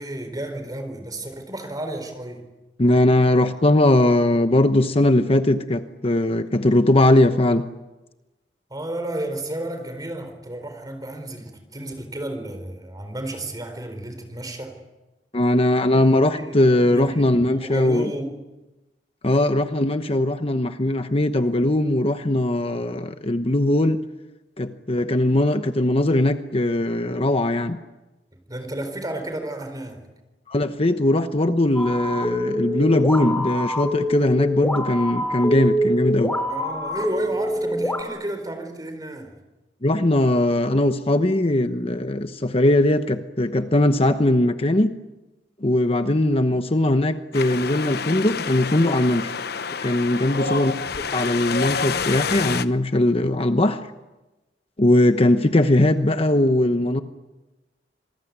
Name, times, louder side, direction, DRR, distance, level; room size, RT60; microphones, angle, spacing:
voice 1, 0.0-2.5 8.7-14.8 16.3-16.6 16.9-18.4 28.5-30.0 36.5-39.3 50.3-50.7, right 1 dB, 20° right, 4.4 m, -32 dB
voice 2, 2.8-7.6 15.3-18.1 19.2-24.0 24.6-27.8 30.5-36.3 39.8-44.9 45.6-49.3 49.8-50.7 51.1-53.8 54.8-57.0, left 1 dB, 35° left, 1.0 m, -20 dB
sound 1, 31.7-38.0, left 1 dB, 10° left, 3.3 m, -25 dB
Wind, 47.3-52.7, left 5 dB, 60° left, 0.9 m, -28 dB
27.0 x 20.5 x 9.6 m
head